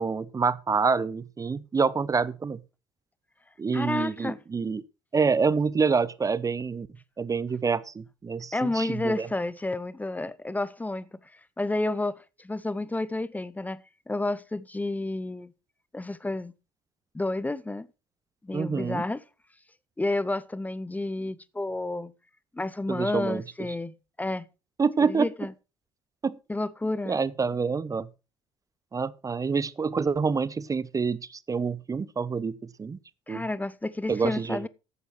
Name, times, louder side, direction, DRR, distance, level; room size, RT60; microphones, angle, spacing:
voice 1, 0.0-2.6 3.6-4.8 5.1-6.9 7.2-9.3 18.5-19.0 22.9-23.4 24.8-25.3 26.2-26.4 27.1-28.1 28.9-32.5 32.8-33.0 33.3-33.4 34.1-34.7, right 5 dB, 25° right, 0.8 m, -27 dB
voice 2, 3.7-4.4 8.5-11.1 11.3-15.5 15.9-16.5 17.1-17.9 18.4-19.2 20.0-22.1 22.5-24.4 25.1-25.5 26.5-27.2 33.3-34.7, left 2 dB, 10° left, 0.8 m, -30 dB
14.5 x 11.0 x 3.2 m
figure-of-eight pair, 55°, 14 cm